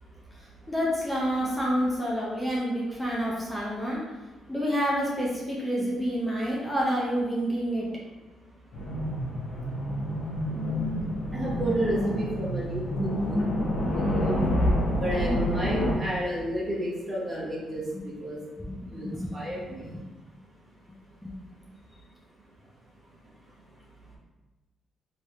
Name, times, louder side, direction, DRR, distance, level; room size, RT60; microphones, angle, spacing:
voice 1, 0.7-4.0 4.5-7.9 14.7-14.8 18.8-19.3 19.9-20.0 21.2-21.3, equal, 10° left, -4 dB, 0.8 m, -28 dB
sound 1, 8.7-15.9, equal, 70° left, 1.0 m, -28 dB
voice 2, 10.5-13.4 13.9-14.4 15.0-18.4 18.9-19.9, right 1 dB, 30° right, -5 dB, 1.1 m, -31 dB
3.2 x 3.1 x 3.1 m, 1.1 s
cardioid pair, 90°, 0 cm